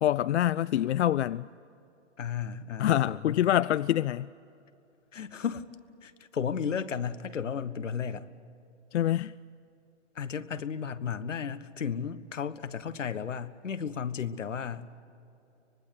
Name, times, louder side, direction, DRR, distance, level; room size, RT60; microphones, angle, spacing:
voice 1, 0.0-1.5 2.8-4.3 8.9-9.3, left 12 dB, 65° left, 0.5 m, -25 dB
voice 2, 2.2-3.4 5.1-5.7 6.0-8.3 10.1-14.9, left 7 dB, 85° left, 1.3 m, -34 dB
24.5 x 20.0 x 8.4 m
hypercardioid pair, 135°, 36 cm